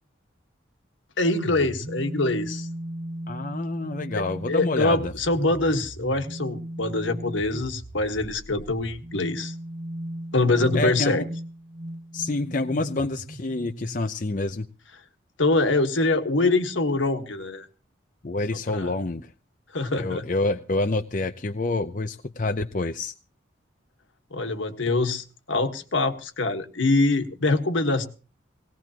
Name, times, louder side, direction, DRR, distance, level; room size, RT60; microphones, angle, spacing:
voice 1, 1.2-2.7 4.1-9.5 10.3-11.2 15.4-17.7 18.5-18.9 19.7-20.2 24.3-28.1, left 2 dB, 75° left, 7 dB, 1.5 m, -24 dB
sound 1, 1.2-14.1, right 1 dB, 35° right, 0.8 m, -37 dB
voice 2, 3.3-5.1 10.7-11.2 12.1-14.7 18.2-19.3 20.0-23.1, left 2 dB, 40° left, 7 dB, 0.6 m, -27 dB
19.0 x 18.0 x 2.9 m, 0.36 s
head